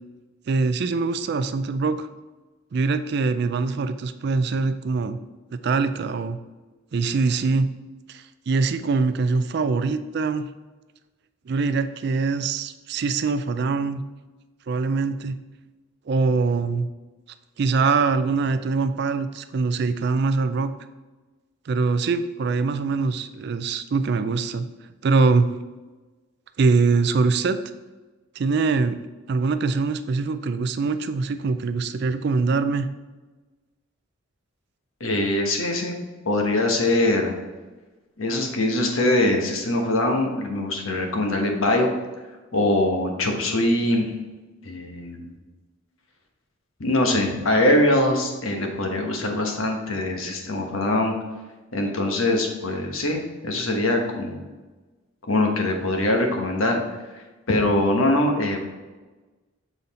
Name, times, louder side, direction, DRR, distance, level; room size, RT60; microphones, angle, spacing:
voice 1, 0.5-2.1 2.7-5.2 5.5-6.4 6.9-7.7 8.1-10.5 11.5-14.0 14.7-15.4 16.1-16.9 17.6-20.7 21.7-24.6 25.0-25.5 26.6-27.6 28.4-29.0 29.3-32.9, right 4 dB, 50° right, 11 dB, 0.3 m, -23 dB
voice 2, 35.0-36.0 36.2-37.3 38.2-41.9 42.5-44.1 44.6-45.3 46.8-51.1 51.7-54.4 55.3-56.8 57.1-58.6, left 1 dB, 75° left, 3 dB, 1.1 m, -22 dB
7.1 x 4.0 x 4.1 m, 1.2 s
head